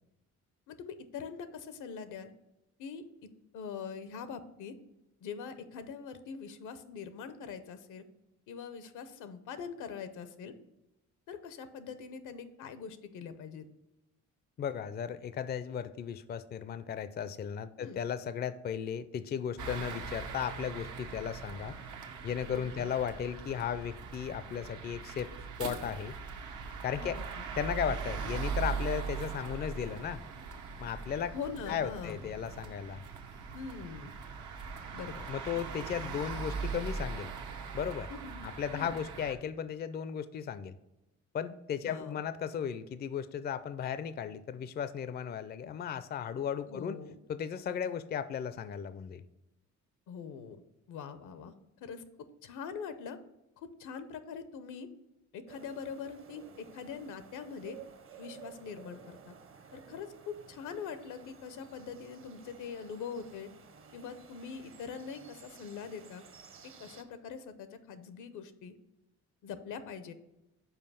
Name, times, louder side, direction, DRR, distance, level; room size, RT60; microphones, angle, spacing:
voice 1, 0.7-2.3 2.8-4.8 5.2-8.0 8.5-10.6 11.3-13.7 17.8-18.0 22.5-22.9 26.9-27.5 31.3-32.4 33.5-34.1 34.9-35.3 38.1-38.9 41.8-42.2 46.6-47.2 50.1-50.6 50.9-51.5 51.8-52.0 52.4-53.2 53.6-54.9 55.3-57.8 58.2-59.3 59.7-63.5 63.9-66.2 66.6-68.7 69.4-70.1, left 6 dB, 85° left, 11 dB, 0.7 m, -43 dB
voice 2, 14.6-21.8 22.2-25.3 25.6-26.2 26.8-27.2 27.6-30.2 30.8-31.3 31.7-33.0 35.3-37.3 37.7-38.1 38.4-40.8 41.3-47.0 47.3-49.2, left 8 dB, 35° left, 14 dB, 0.4 m, -36 dB
sound 1, 19.6-39.3, right 5 dB, 80° right, 0.9 m, -40 dB
sound 2, 55.5-67.0, right 7 dB, 45° right, 0.8 m, -54 dB
5.7 x 4.5 x 5.5 m, 0.93 s
cardioid pair, 90°, 30 cm